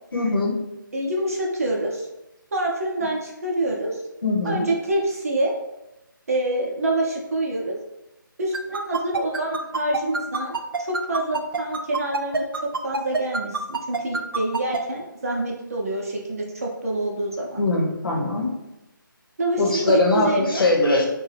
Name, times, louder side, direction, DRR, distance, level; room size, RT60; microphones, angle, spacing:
voice 1, 0.1-0.6 4.2-4.7 17.6-18.5 19.6-21.1, left 2 dB, 85° left, -1 dB, 0.9 m, -21 dB
voice 2, 0.9-2.1 2.5-4.0 4.4-5.5 6.3-7.7 8.4-17.6 19.4-20.6, right 1 dB, 40° right, -2 dB, 0.6 m, -26 dB
sound 1, 8.5-14.8, right 4 dB, 85° right, 0.4 m, -25 dB
2.5 x 2.2 x 3.3 m, 0.94 s
figure-of-eight pair, 170°, 11 cm